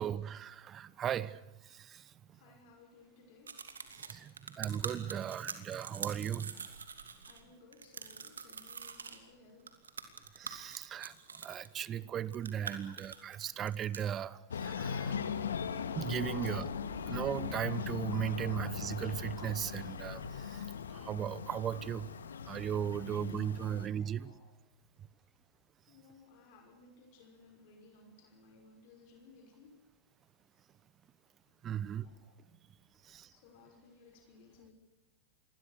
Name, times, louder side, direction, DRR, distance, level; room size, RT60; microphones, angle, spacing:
voice 1, 0.0-2.1 4.0-6.7 10.3-15.2 15.9-16.7 17.1-22.1 22.4-24.3 31.6-32.1 33.0-33.3, right 9 dB, 30° right, 19 dB, 1.0 m, -37 dB
voice 2, 2.2-4.5 5.0-5.4 6.5-6.7 7.3-9.8 11.6-11.7 12.7-13.2 14.2-14.4 22.9-24.5 25.0-25.1 25.9-29.7 32.0-32.4 32.9-34.7, left 3 dB, 55° left, 4 dB, 5.8 m, -62 dB
sound 1, 3.5-7.4 7.7-9.2 9.7-11.7 12.2-14.0, right 6 dB, 85° right, 2.8 m, -44 dB
sound 2, 14.5-23.9, left 6 dB, 80° left, 2.0 m, -39 dB
27.5 x 21.5 x 6.7 m, 0.99 s
hypercardioid pair, 105°, 0 cm